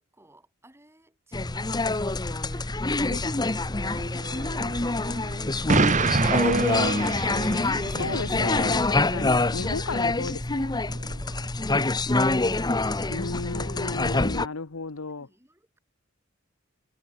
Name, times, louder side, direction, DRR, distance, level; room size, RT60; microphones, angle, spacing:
voice 1, 0.0-8.4 11.2-13.4 14.4-15.8, right 1 dB, 10° right, 6.1 m, -56 dB
sound 1, 1.3-14.5, left 2 dB, 20° left, 0.9 m, -26 dB
sound 2, 3.0-13.4 13.6-13.7, right 2 dB, 55° right, 2.7 m, -37 dB
Explosion, 5.7-7.9, right 4 dB, 35° right, 1.0 m, -25 dB
voice 2, 7.9-10.8 13.1-15.3, left 3 dB, 80° left, 1.1 m, -34 dB
head